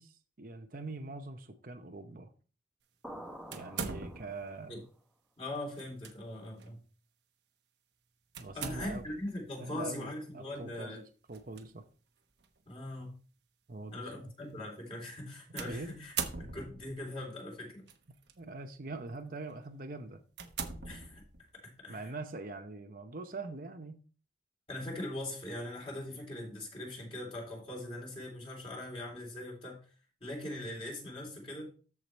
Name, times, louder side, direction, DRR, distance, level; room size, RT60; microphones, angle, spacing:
voice 1, 0.0-2.3 3.5-4.8 8.4-9.0 9.6-11.8 13.7-14.3 15.6-15.9 18.4-20.2 21.9-24.0, right 3 dB, 50° right, 6 dB, 0.8 m, -43 dB
sound 1, 3.0-4.8, equal, ahead, 0.8 m, -48 dB
sound 2, 3.5-4.5 5.8-6.1 6.6-6.7 8.3-9.2 11.3-11.6 12.4-12.5 15.6-17.0 17.9-18.3 18.9-19.1 19.6-19.7 20.3-21.5, right 6 dB, 70° right, 1.1 m, -40 dB
voice 2, 5.4-6.8 8.5-11.0 12.7-13.1 13.9-17.8 20.8-21.2 21.8-22.1 24.7-29.8 30.2-31.7, left 1 dB, 30° left, -1 dB, 3.1 m, -41 dB
13.5 x 4.8 x 3.1 m, 0.37 s
head